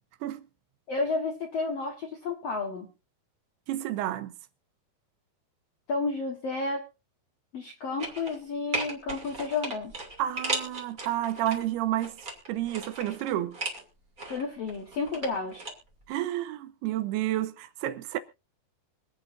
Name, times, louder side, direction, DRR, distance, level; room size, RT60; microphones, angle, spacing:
voice 1, 0.9-2.9 5.9-6.8 7.5-9.9 14.3-15.6, left 3 dB, 65° left, 1.6 m, -31 dB
voice 2, 3.7-4.3 10.2-12.2 12.5-13.6 16.1-18.2, right 13 dB, 80° right, 2.8 m, -30 dB
sound 1, 8.0-8.4 8.7-11.6 12.0-13.8 14.2-15.7 16.0-16.1, right 2 dB, 25° right, 2.5 m, -36 dB
25.0 x 8.9 x 2.6 m
omnidirectional pair, 4.7 m